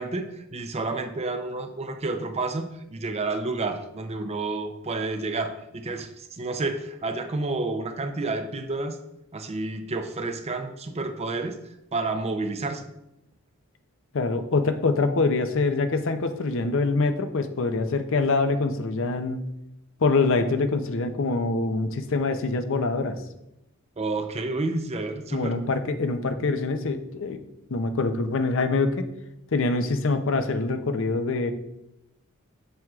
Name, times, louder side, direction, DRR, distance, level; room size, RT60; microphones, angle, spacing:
voice 1, 0.0-9.0 9.3-11.6 11.9-12.9 24.0-25.6, right 3 dB, 30° right, 7 dB, 0.5 m, -30 dB
voice 2, 14.1-19.4 20.0-23.2 25.3-27.4 27.7-29.0 29.5-31.5, left 3 dB, 60° left, 8 dB, 0.6 m, -24 dB
7.6 x 7.4 x 2.4 m, 0.87 s
head